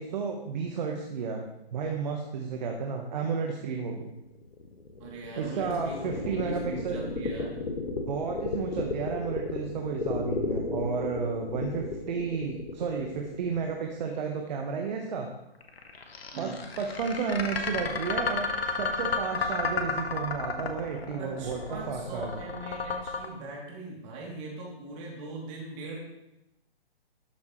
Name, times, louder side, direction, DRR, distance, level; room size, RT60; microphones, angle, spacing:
voice 1, 0.0-4.1 5.4-7.0 8.1-15.3 16.4-18.5 18.7-22.4, right 5 dB, 45° right, 2 dB, 1.2 m, -32 dB
sound 1, 4.3-14.3 15.6-23.3, left 4 dB, 75° left, 1.5 m, -33 dB
voice 2, 5.0-7.5 16.3-16.6 21.2-26.0, right 2 dB, 30° right, -3 dB, 3.0 m, -40 dB
12.5 x 7.2 x 3.2 m, 0.94 s
hypercardioid pair, 140°, 31 cm